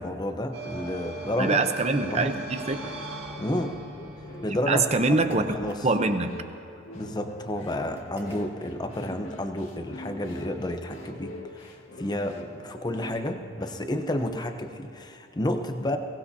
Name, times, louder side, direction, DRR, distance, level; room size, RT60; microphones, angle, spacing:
voice 1, 0.0-1.6 2.0-2.3 3.4-3.8 4.4-5.9 6.9-16.0, left 1 dB, 20° left, 6 dB, 0.8 m, -31 dB
sound 1, 0.5-5.8, right 2 dB, 85° right, 3.7 m, -40 dB
voice 2, 1.4-2.8 4.7-5.4 5.8-6.3, right 3 dB, 30° right, 8 dB, 0.8 m, -24 dB
sound 2, 3.3-13.9, left 1 dB, 75° left, 2.0 m, -44 dB
sound 3, 5.0-6.3 7.9-8.8, right 2 dB, 15° right, 1.6 m, -49 dB
22.0 x 18.0 x 2.8 m, 2.7 s
head